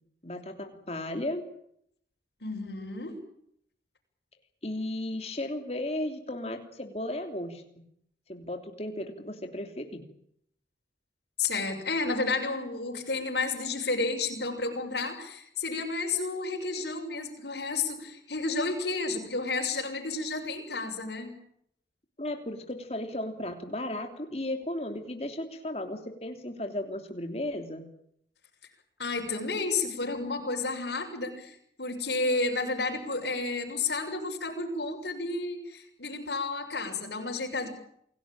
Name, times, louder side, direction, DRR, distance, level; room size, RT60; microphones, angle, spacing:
voice 1, 0.2-1.4 4.6-7.6 8.3-10.0 22.2-27.9, left 1 dB, 35° left, 5 dB, 3.1 m, -35 dB
voice 2, 2.4-3.2 11.4-21.4 29.0-37.7, left 3 dB, 75° left, 3 dB, 6.5 m, -31 dB
28.5 x 18.0 x 8.9 m, 0.72 s
head